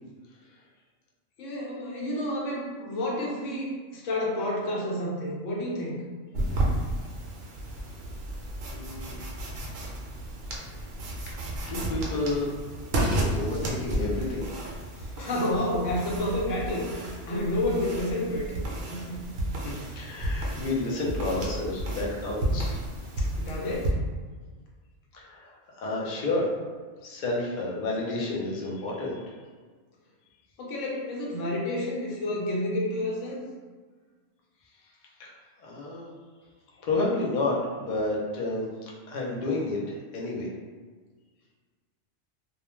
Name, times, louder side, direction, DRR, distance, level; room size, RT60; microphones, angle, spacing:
voice 1, 1.4-6.0 15.0-17.0 17.3-18.5 18.9-19.3 23.2-23.9 30.6-33.4, left 1 dB, 85° left, -3 dB, 1.0 m, -30 dB
sound 1, 6.3-23.9, right 1 dB, 65° right, 0.7 m, -32 dB
voice 2, 8.7-9.2 11.7-12.5 13.0-14.4 19.6-22.8 25.1-26.5 27.0-29.3 35.2-35.3 35.6-36.2 36.8-40.5, left 2 dB, 55° left, -4 dB, 0.5 m, -30 dB
2.3 x 2.1 x 3.0 m, 1.5 s
omnidirectional pair, 1.3 m